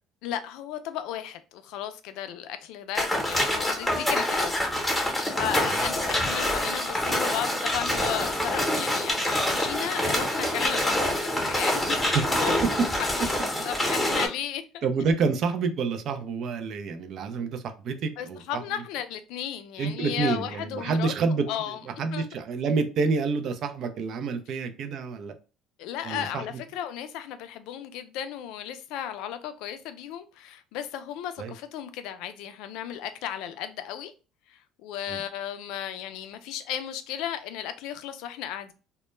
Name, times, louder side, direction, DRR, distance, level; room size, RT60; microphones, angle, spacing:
voice 1, 0.2-12.6 13.0-13.1 13.6-14.9 18.2-21.1 21.5-21.8 22.1-22.2 25.8-34.1 34.5-38.7, left 10 dB, 75° left, 0.3 m, -35 dB
sound 1, 2.9-14.3, left 1 dB, 5° left, 0.8 m, -26 dB
voice 2, 14.8-18.6 19.8-25.3 26.0-26.6 31.4-31.5 35.1-35.2, right 4 dB, 55° right, 0.4 m, -28 dB
2.1 x 2.1 x 3.0 m
cardioid pair, 110°, 0 cm